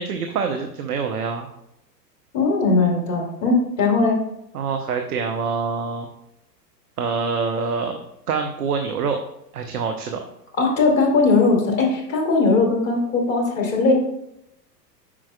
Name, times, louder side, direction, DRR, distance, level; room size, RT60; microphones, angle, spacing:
voice 1, 0.0-1.5 4.5-6.1 7.0-8.0 8.3-9.2 9.5-10.2, right 5 dB, 65° right, 5 dB, 0.9 m, -25 dB
voice 2, 2.3-4.2 10.6-13.9, left 3 dB, 45° left, 0 dB, 2.4 m, -19 dB
9.7 x 6.1 x 2.3 m, 0.81 s
figure-of-eight pair, 95°, 50 cm